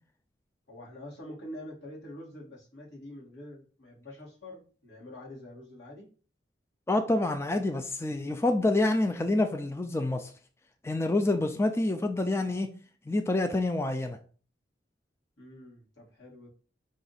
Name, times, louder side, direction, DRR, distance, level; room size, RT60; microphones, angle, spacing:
voice 1, 0.7-6.1 15.4-16.5, left 1 dB, 85° left, 1.9 m, -46 dB
voice 2, 6.9-10.3 10.8-12.7 13.1-14.2, left 2 dB, 15° left, 0.3 m, -27 dB
4.8 x 2.6 x 4.0 m
head